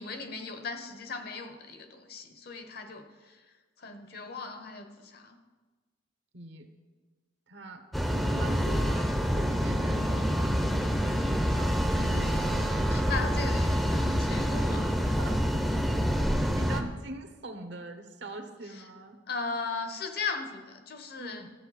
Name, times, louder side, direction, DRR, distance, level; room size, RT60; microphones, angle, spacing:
voice 1, 0.0-3.4 3.8-5.4 11.9-15.2 18.7-18.9 19.3-21.5, left 4 dB, 55° left, 6 dB, 1.0 m, -38 dB
voice 2, 6.3-6.7 7.5-12.0 15.0-15.9 16.3-19.2 21.2-21.5, right 2 dB, 70° right, 7 dB, 1.0 m, -43 dB
sound 1, 7.9-16.8, equal, ahead, 0.6 m, -27 dB
13.0 x 7.7 x 4.1 m, 1.3 s
head